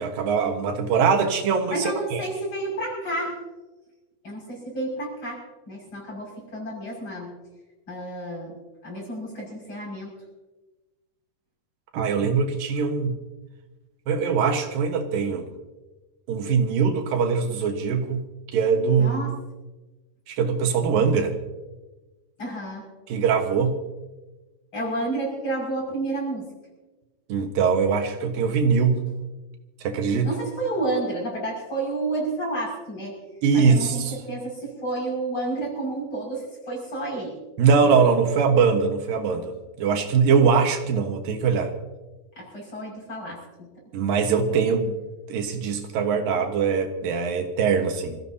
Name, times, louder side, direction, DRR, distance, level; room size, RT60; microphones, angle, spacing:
voice 1, 0.0-2.2 11.9-13.1 14.1-15.5 16.3-18.2 18.5-19.2 20.3-21.3 23.1-23.8 27.3-29.0 29.8-30.3 33.4-34.2 37.6-41.7 43.9-45.0 45.3-48.2, right 5 dB, 85° right, 5 dB, 3.0 m, -22 dB
voice 2, 1.7-3.4 4.2-7.3 7.9-8.6 8.8-10.1 19.0-19.4 22.4-22.9 24.7-26.5 30.2-33.2 33.5-37.4 42.4-43.7 44.5-44.6, right 2 dB, 35° left, -2 dB, 6.6 m, -30 dB
27.0 x 15.0 x 2.8 m, 1.2 s
omnidirectional pair, 3.9 m